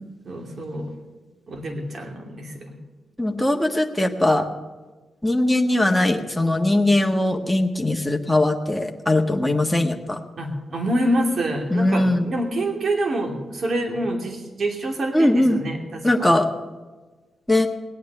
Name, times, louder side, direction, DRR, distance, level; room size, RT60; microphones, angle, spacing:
voice 1, 0.2-0.9 1.5-2.8 10.4-16.3, right 1 dB, 60° right, 2 dB, 2.8 m, -26 dB
voice 2, 3.2-4.4 5.2-10.2 11.7-12.3 15.1-15.6 16.0-16.5 17.5-17.7, left 1 dB, 5° left, 2 dB, 1.5 m, -20 dB
17.5 x 9.4 x 6.7 m, 1.3 s
supercardioid pair, 50°, 0 cm